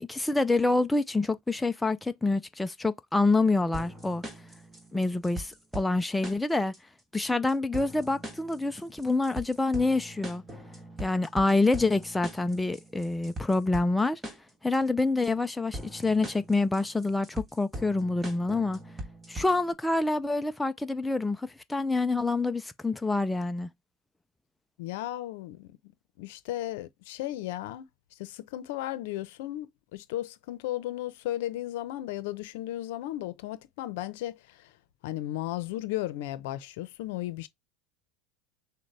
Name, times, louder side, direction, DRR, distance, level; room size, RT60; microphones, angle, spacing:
voice 1, 0.0-4.2 4.9-6.7 7.1-10.4 11.0-14.2 14.6-18.8 19.3-23.7, left 3 dB, 5° left, 0.3 m, -27 dB
sound 1, 3.7-19.7, equal, 15° right, 1.4 m, -42 dB
voice 2, 24.8-25.7 26.2-34.7 35.0-37.5, left 14 dB, 75° left, 0.6 m, -35 dB
6.4 x 2.2 x 3.3 m
supercardioid pair, 115°, 0 cm